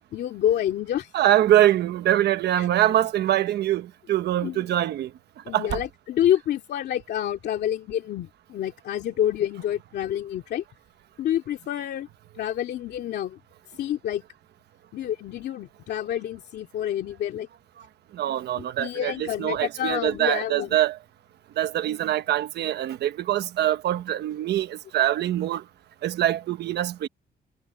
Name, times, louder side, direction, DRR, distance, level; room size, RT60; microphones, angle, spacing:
voice 1, 0.1-1.1 2.6-2.7 4.4-4.7 5.5-10.6 11.2-12.1 12.4-13.4 13.8-14.2 14.9-17.5 18.8-20.8, left 11 dB, 85° left, 2.3 m, -28 dB
voice 2, 1.1-5.1 5.5-5.8 18.1-21.0 21.6-25.6 26.0-27.1, right 12 dB, 90° right, 1.1 m, -24 dB
cardioid pair, 140°, 17 cm